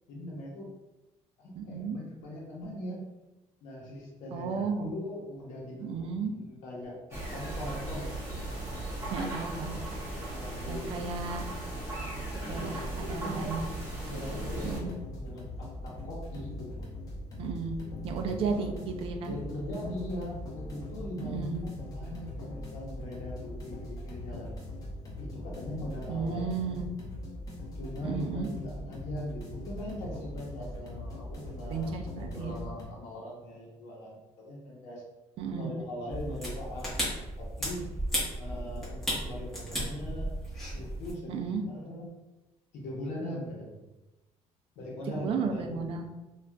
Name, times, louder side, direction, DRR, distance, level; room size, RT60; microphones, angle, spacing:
voice 1, 0.1-0.8 1.4-3.1 3.6-8.1 10.3-11.1 12.5-13.6 14.1-16.9 18.2-18.7 19.2-24.5 25.2-26.8 27.8-35.0 35.6-37.8 38.4-40.3 40.7-41.3 41.7-42.1 42.7-43.8 44.8-45.8, left 1 dB, 75° left, -4 dB, 0.8 m, -40 dB
voice 2, 1.6-2.0 4.3-4.9 5.8-6.3 9.1-9.8 10.7-11.5 12.5-13.6 14.6-14.9 17.4-17.8 18.0-19.3 21.2-21.6 26.1-26.8 28.0-28.5 31.7-32.6 35.4-35.7 41.3-41.6 45.2-46.0, right 5 dB, 50° right, 5 dB, 0.4 m, -33 dB
sound 1, 7.1-14.8, right 1 dB, 25° right, 1.1 m, -37 dB
sound 2, 14.2-32.8, left 1 dB, 30° left, 0.7 m, -41 dB
sound 3, 36.1-41.1, equal, 5° left, 1.1 m, -34 dB
3.6 x 2.3 x 2.2 m, 1.0 s
cardioid pair, 160°, 12 cm